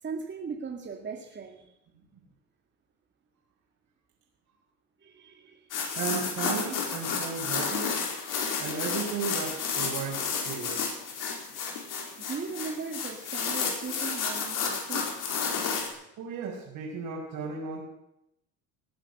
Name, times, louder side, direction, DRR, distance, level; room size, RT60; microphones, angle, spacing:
voice 1, 0.0-1.7 5.0-5.7 12.2-15.3, right 5 dB, 30° right, 1 dB, 2.2 m, -38 dB
sound 1, 5.7-15.9, left 5 dB, 60° left, 4.6 m, -31 dB
voice 2, 5.9-7.9 8.6-10.7 16.2-17.8, right 5 dB, 60° right, -4 dB, 5.3 m, -34 dB
18.5 x 9.3 x 8.0 m, 0.82 s
supercardioid pair, 95°, 36 cm